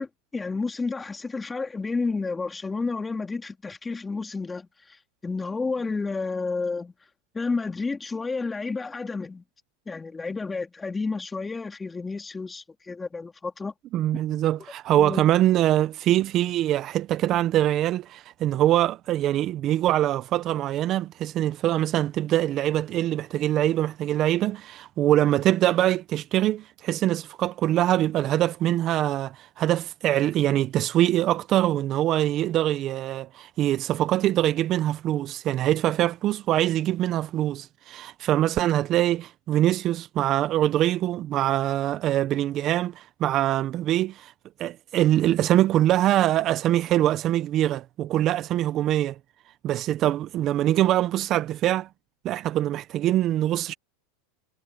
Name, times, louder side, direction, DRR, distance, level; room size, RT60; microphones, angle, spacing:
voice 1, 0.0-6.9 7.3-9.4 9.9-13.7 15.0-15.2, left 4 dB, 15° left, 3.0 m, -31 dB
voice 2, 13.9-44.3 44.6-49.2 49.6-51.9 52.2-53.7, right 13 dB, 40° right, 1.0 m, -23 dB
hypercardioid pair, 115°, 0 cm